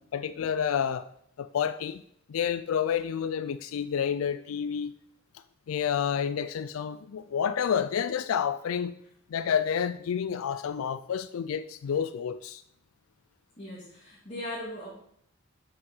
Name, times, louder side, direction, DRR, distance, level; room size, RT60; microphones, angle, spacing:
voice 1, 0.1-1.1 1.4-2.0 2.3-4.9 5.7-8.9 9.3-12.6, left 8 dB, 75° left, 12 dB, 0.4 m, -29 dB
voice 2, 13.6-14.9, left 1 dB, 35° left, -6 dB, 2.3 m, -38 dB
8.0 x 5.8 x 5.4 m, 0.70 s
head